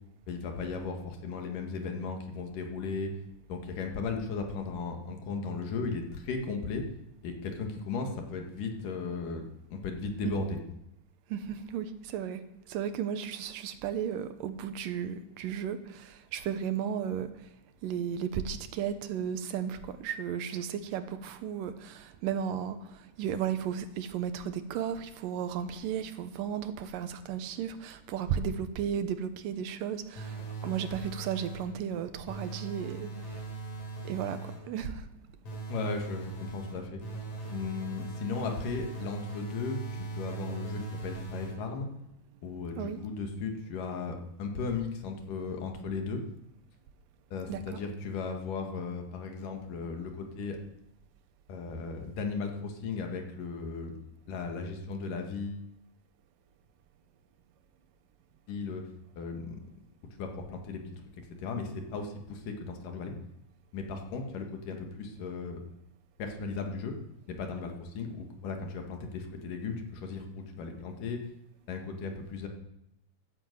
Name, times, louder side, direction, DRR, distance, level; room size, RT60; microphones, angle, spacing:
voice 1, 0.3-3.1 3.5-6.9 7.2-10.6 35.7-37.0 37.5-41.9 42.4-46.2 47.3-50.6 51.5-53.9 54.3-55.6 58.5-58.8 59.2-59.6 60.2-60.8 61.2-63.1 63.7-65.6 66.2-67.0 67.3-71.2 71.7-72.5, left 4 dB, 75° left, 3 dB, 3.3 m, -36 dB
voice 2, 11.3-12.4 12.7-17.5 17.8-33.5 34.0-35.1 42.8-43.0 47.5-47.8, right 8 dB, 80° right, 10 dB, 2.6 m, -34 dB
sound 1, 30.2-31.8 32.3-34.8 35.4-41.8, right 3 dB, 50° left, 4.3 m, -40 dB
12.5 x 10.5 x 7.9 m, 0.87 s
omnidirectional pair, 3.9 m